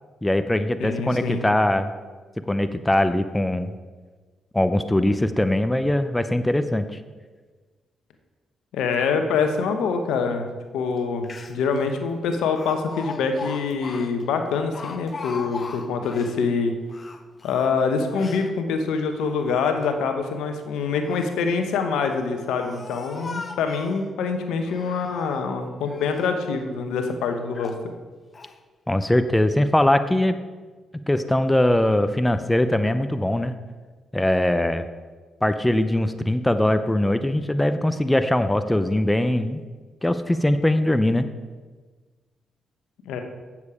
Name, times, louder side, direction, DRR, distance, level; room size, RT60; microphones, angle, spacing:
voice 1, 0.2-1.9 2.5-3.7 4.5-7.0 28.9-30.3 31.1-33.5 34.1-34.9 35.4-39.6 40.0-41.3, left 1 dB, 10° left, 10 dB, 0.6 m, -21 dB
voice 2, 0.8-1.4 8.7-10.5 10.7-16.7 17.4-27.9 43.0-43.2, left 5 dB, 80° left, 6 dB, 0.9 m, -25 dB
Speech, 11.0-11.1 11.2-11.8 12.6-16.4 16.9-18.5 19.1-19.9 20.8-21.4 22.1-24.1 24.6-25.5 25.8-26.4 26.9-27.0 27.5-27.9 28.3-28.6, left 4 dB, 40° left, 0.8 m, -39 dB
8.3 x 7.2 x 4.8 m, 1.4 s
supercardioid pair, 55°, 0 cm